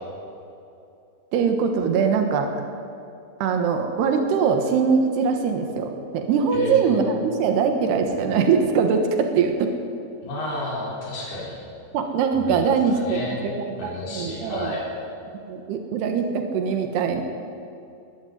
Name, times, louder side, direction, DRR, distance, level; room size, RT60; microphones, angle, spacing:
voice 1, 1.3-2.5 3.4-9.7 11.9-14.7 15.5-17.2, right 6 dB, 90° right, 5 dB, 3.5 m, -22 dB
voice 2, 6.5-7.0 10.2-11.5 12.3-13.4 13.8-14.8, left 1 dB, 75° left, -5 dB, 6.5 m, -31 dB
22.0 x 13.5 x 9.4 m, 2.6 s
omnidirectional pair, 4.6 m